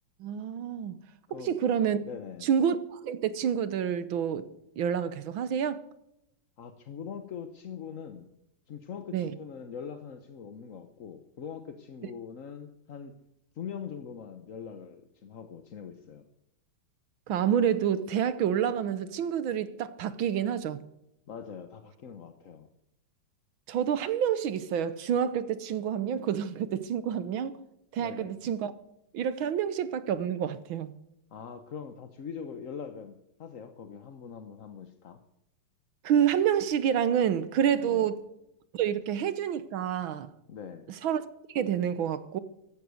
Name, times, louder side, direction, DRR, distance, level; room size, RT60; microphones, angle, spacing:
voice 1, 0.2-1.0 1.3-2.0 2.4-4.5 4.8-5.8 9.1-9.4 17.3-20.8 23.7-27.6 27.9-28.7 29.1-30.9 36.0-38.2 38.7-40.3 40.9-42.4, right 9 dB, 70° right, 1.6 m, -28 dB
voice 2, 2.0-2.4 6.6-8.3 8.7-13.2 13.5-16.2 21.3-22.7 28.0-28.4 31.3-35.2 37.8-38.1 40.5-40.9, left 7 dB, 50° left, 1.1 m, -42 dB
15.0 x 12.0 x 6.4 m
omnidirectional pair, 2.4 m